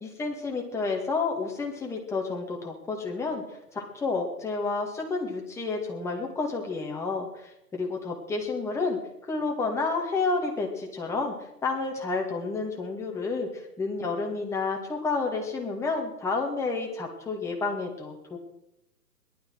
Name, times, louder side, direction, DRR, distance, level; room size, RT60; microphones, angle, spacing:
voice 1, 0.0-3.4 3.7-11.3 11.6-18.4, left 3 dB, 5° left, 0 dB, 2.0 m, -30 dB
18.5 x 12.0 x 6.3 m, 0.86 s
figure-of-eight pair, 135°, 50 cm